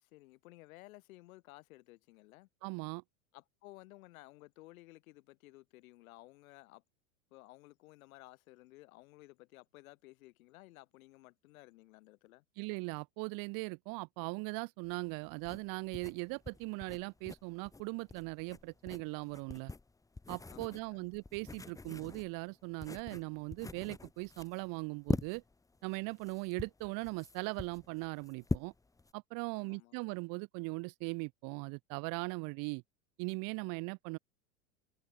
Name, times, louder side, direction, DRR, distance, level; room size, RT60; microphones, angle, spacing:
voice 1, 0.0-2.5 3.3-6.8 7.3-12.4 20.5-21.1 29.5-30.0, left 19 dB, 65° left, 2.6 m, -56 dB
voice 2, 2.6-3.0 12.6-19.7 20.3-25.4 25.8-28.7 29.1-32.8 33.2-34.2, right 30 dB, 50° right, 1.4 m, -39 dB
sound 1, 14.8-29.1, left 3 dB, 5° left, 1.1 m, -43 dB
hypercardioid pair, 105°, 45 cm